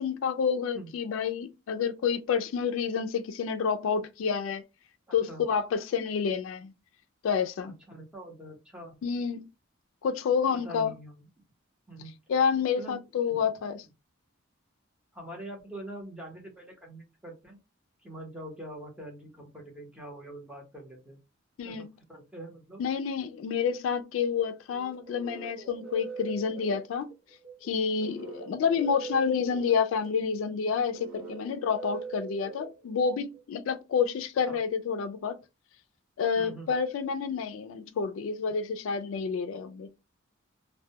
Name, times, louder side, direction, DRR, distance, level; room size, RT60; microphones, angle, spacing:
voice 1, 0.0-4.6 5.1-6.7 7.2-7.7 9.0-9.5 10.0-10.9 12.3-13.9 21.6-21.9 22.8-27.1 27.6-35.4 36.2-39.9, left 6 dB, 75° left, 0.3 m, -29 dB
voice 2, 5.1-5.4 7.7-9.0 10.6-11.3 11.9-12.1 12.8-13.0 13.3-13.4 15.1-17.6 18.0-21.2 21.6-22.9 34.5-34.6 36.3-36.7, right 1 dB, 5° right, 0.8 m, -44 dB
sound 1, 24.7-33.4, right 5 dB, 50° right, 0.8 m, -43 dB
2.1 x 2.1 x 2.7 m
head